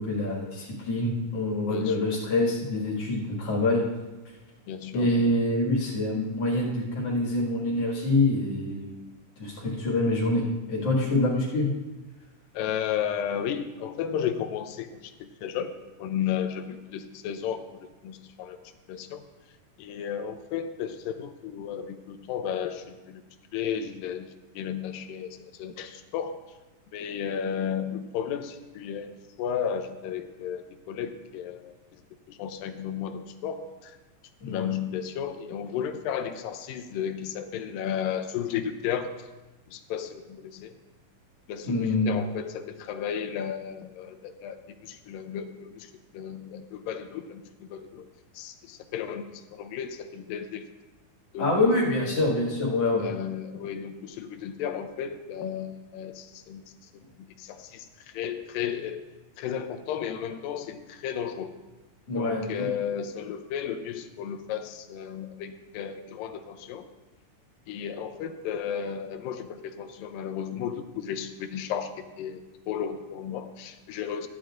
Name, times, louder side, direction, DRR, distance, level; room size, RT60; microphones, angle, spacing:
voice 1, 0.0-3.8 4.9-8.9 9.4-11.7 34.4-34.7 41.6-42.2 51.4-53.0 62.1-62.7, left 2 dB, 50° left, -5 dB, 2.8 m, -26 dB
voice 2, 4.7-5.1 12.6-14.9 15.4-15.7 16.0-17.6 18.0-18.6 18.9-19.2 19.8-22.8 23.1-23.2 23.5-24.3 24.6-25.3 25.6-26.4 26.9-29.1 29.4-30.6 30.9-31.7 32.4-33.7 34.5-39.1 39.7-40.7 41.5-44.6 44.9-45.9 46.1-47.4 47.7-48.0 48.4-49.2 49.5-50.6 51.3-51.6 52.0-52.1 53.0-56.6 57.5-57.9 58.2-59.0 59.4-61.5 62.2-66.8 67.7-71.9 72.2-72.4 72.7-74.3, left 8 dB, 85° left, 7 dB, 2.3 m, -33 dB
14.5 x 10.5 x 2.5 m, 1.1 s
omnidirectional pair, 3.9 m